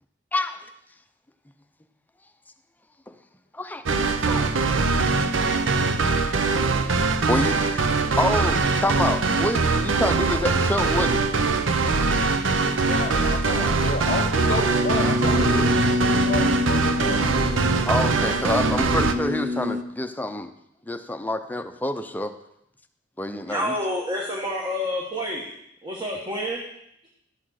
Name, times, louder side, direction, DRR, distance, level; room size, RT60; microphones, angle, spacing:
voice 1, 0.3-0.6 3.1-3.2 3.5-3.8 4.3-4.8 7.3-7.9 8.2-11.3 12.0-12.1 17.8-20.5 20.9-22.3 23.2-23.7, left 1 dB, 10° left, 7 dB, 0.6 m, -27 dB
sound 1, 3.9-19.1, right 4 dB, 80° right, 0.7 m, -22 dB
voice 2, 12.8-17.2, left 4 dB, 45° left, 7 dB, 0.8 m, -31 dB
sound 2, 14.3-19.8, left 2 dB, 45° right, 0.6 m, -27 dB
voice 3, 23.5-25.5 25.8-26.6, left 1 dB, 25° right, -1 dB, 1.3 m, -28 dB
11.5 x 6.2 x 6.4 m, 0.78 s
head